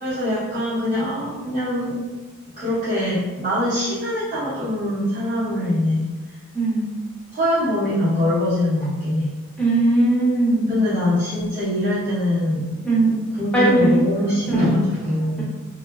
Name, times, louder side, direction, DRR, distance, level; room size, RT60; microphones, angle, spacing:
voice 1, 0.0-2.0 2.6-6.1 7.3-9.3 10.7-12.7 13.3-15.4, left 1 dB, 35° right, -13 dB, 0.8 m, -23 dB
voice 2, 6.5-6.9 9.6-10.7 12.8-13.2 13.5-14.0 14.5-14.6, right 2 dB, 5° left, -7 dB, 0.5 m, -18 dB
2.6 x 2.0 x 2.3 m, 1.2 s
head